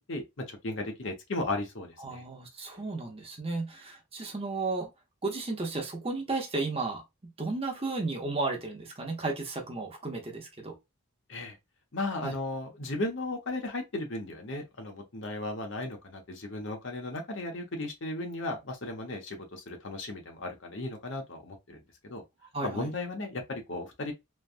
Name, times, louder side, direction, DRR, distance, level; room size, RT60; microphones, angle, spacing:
voice 1, 0.1-2.2 11.3-11.6 11.9-22.2 22.6-24.1, left 2 dB, 60° left, 0.9 m, -35 dB
voice 2, 2.0-4.9 5.2-7.0 7.4-10.7 12.2-12.3 22.5-22.9, right 3 dB, 25° right, 0.7 m, -33 dB
3.3 x 2.2 x 2.4 m
head